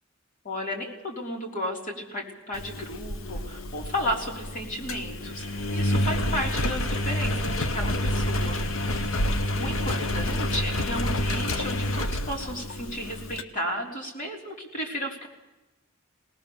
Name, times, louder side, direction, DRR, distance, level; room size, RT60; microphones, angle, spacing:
voice 1, 0.4-8.6 9.6-15.3, equal, 40° left, 0 dB, 3.8 m, -33 dB
Engine, 2.5-13.4, left 1 dB, 80° left, 1.1 m, -28 dB
21.0 x 19.0 x 7.1 m, 1.1 s
head